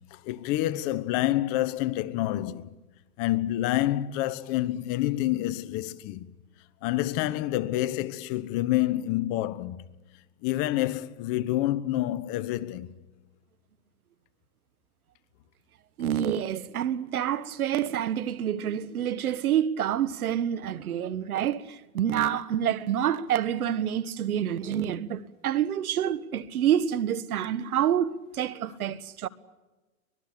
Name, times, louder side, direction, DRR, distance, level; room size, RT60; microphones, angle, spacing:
voice 1, 0.0-2.8 3.2-6.3 6.8-9.8 10.4-12.9, left 15 dB, 35° left, 1.1 m, -28 dB
voice 2, 16.0-29.3, right 10 dB, 75° right, 1.6 m, -27 dB
24.5 x 20.5 x 8.5 m
hypercardioid pair, 140°, 44 cm